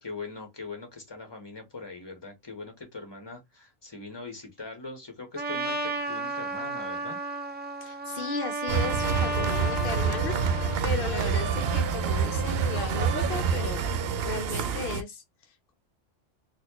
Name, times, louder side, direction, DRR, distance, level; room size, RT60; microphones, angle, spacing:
voice 1, 0.0-7.2, left 3 dB, 20° left, 1.1 m, -41 dB
Trumpet, 5.3-10.8, right 2 dB, 15° right, 0.3 m, -33 dB
voice 2, 7.8-13.9 14.2-15.7, left 5 dB, 60° left, 0.7 m, -36 dB
sound 1, 8.7-15.0, right 6 dB, 65° right, 0.7 m, -27 dB
4.1 x 2.3 x 2.9 m
omnidirectional pair, 1.3 m